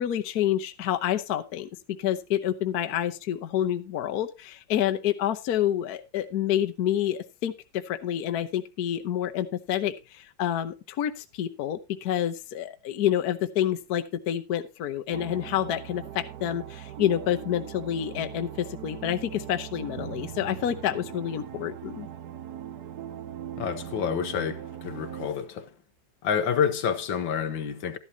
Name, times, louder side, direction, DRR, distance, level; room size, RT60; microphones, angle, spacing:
voice 1, 0.0-1.7 2.0-22.1, left 11 dB, 60° left, 1.3 m, -28 dB
sound 1, 15.1-25.3, right 10 dB, 65° right, 1.3 m, -40 dB
voice 2, 23.6-25.7 26.2-28.0, left 7 dB, 80° left, 1.8 m, -28 dB
13.0 x 11.0 x 2.8 m
omnidirectional pair, 2.0 m